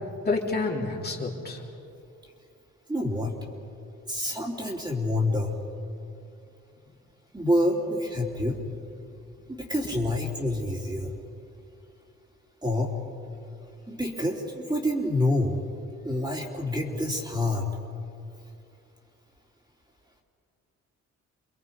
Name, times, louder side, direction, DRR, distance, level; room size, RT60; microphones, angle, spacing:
voice 1, 0.2-1.6, left 3 dB, 30° left, -2 dB, 3.4 m, -28 dB
voice 2, 2.9-3.3 4.1-5.6 7.3-8.6 9.5-11.1 12.6-12.9 13.9-15.6 16.0-17.7, left 1 dB, 15° right, -1 dB, 3.5 m, -27 dB
29.5 x 22.0 x 5.5 m, 2.6 s
cardioid pair, 90°, 30 cm